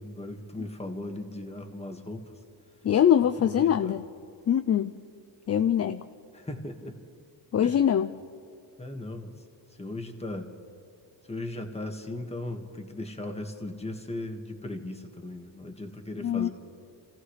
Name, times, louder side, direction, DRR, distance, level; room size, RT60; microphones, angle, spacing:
voice 1, 0.0-2.3 3.4-3.9 6.3-7.0 7.6-7.8 8.8-9.3 9.8-10.5 11.3-16.5, left 1 dB, 15° left, 4 dB, 1.7 m, -37 dB
voice 2, 2.8-4.0 4.5-4.9 5.5-6.0 7.5-8.1 16.2-16.5, left 9 dB, 35° left, 10 dB, 0.4 m, -23 dB
29.0 x 15.0 x 3.3 m, 2.4 s
cardioid pair, 90°, 44 cm